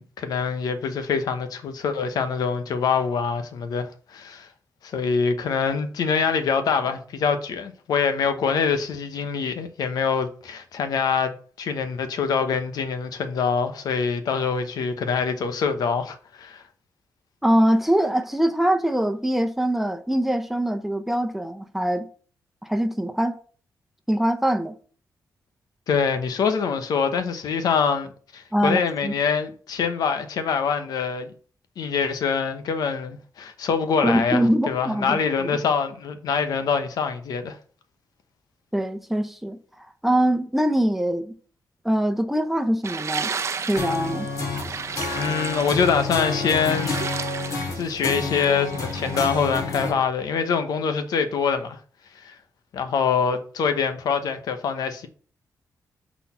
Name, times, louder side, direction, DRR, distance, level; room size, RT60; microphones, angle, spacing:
voice 1, 0.0-4.5 4.8-16.6 25.9-31.3 31.8-37.6 45.1-47.0 47.7-51.8 52.2-52.3 52.7-55.1, left 6 dB, 85° left, 0.9 m, -25 dB
voice 2, 17.4-22.1 22.6-23.4 24.1-24.7 28.5-29.1 34.0-35.6 38.7-41.3 41.8-43.3 43.7-44.3, right 1 dB, 5° right, 0.8 m, -23 dB
sound 1, 42.8-49.4, right 5 dB, 45° right, 0.7 m, -34 dB
sound 2, 43.8-49.9, left 3 dB, 65° left, 2.4 m, -29 dB
6.2 x 4.1 x 5.7 m
cardioid pair, 105°, 6 cm